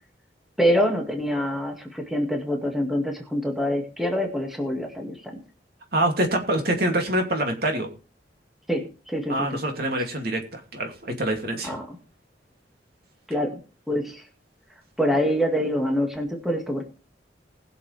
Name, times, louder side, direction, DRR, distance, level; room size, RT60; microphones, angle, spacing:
voice 1, 0.6-5.2 8.7-9.5 11.6-12.0 13.3-13.6 13.9-14.2 15.0-16.8, equal, ahead, 2 dB, 2.0 m, -25 dB
voice 2, 5.9-7.9 9.3-11.8, right 1 dB, 60° right, 3 dB, 2.6 m, -25 dB
20.0 x 6.9 x 3.4 m, 0.34 s
head